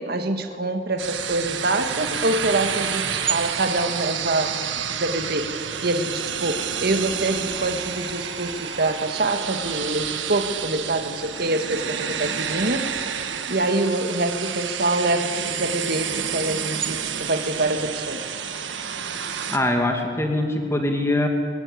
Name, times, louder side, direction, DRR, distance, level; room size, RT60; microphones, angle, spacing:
voice 1, 0.0-5.5 5.8-18.2, right 2 dB, 55° right, 6 dB, 1.6 m, -25 dB
sound 1, 1.0-19.6, right 7 dB, 80° right, 1.5 m, -29 dB
voice 2, 19.5-21.3, left 1 dB, 15° left, 3 dB, 2.3 m, -22 dB
22.5 x 17.0 x 8.5 m, 2.4 s
head